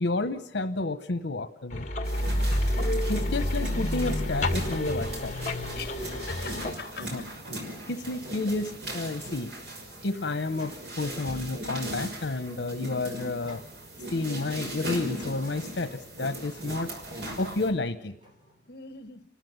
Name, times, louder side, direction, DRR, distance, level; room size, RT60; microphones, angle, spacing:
voice 1, 0.0-1.9 3.1-5.3 7.1-7.2 7.9-9.5 10.0-13.6 14.1-16.9 17.4-18.1, left 2 dB, 85° left, 1.0 m, -30 dB
sound 1, 1.7-6.7, left 1 dB, 45° left, 2.0 m, -29 dB
sound 2, 2.0-17.7, right 1 dB, 70° right, 6.0 m, -38 dB
sound 3, 3.7-4.4 5.7-6.3 7.0-7.8 8.2-8.6 9.0-9.4 10.5-11.0 11.7-12.4 13.1-13.7 14.4-14.7 15.2-16.7 17.1-17.7 18.2-18.6, equal, 25° right, 5.6 m, -52 dB
voice 2, 5.8-7.3 18.7-19.2, left 5 dB, 60° left, 1.5 m, -42 dB
29.5 x 14.0 x 9.3 m
head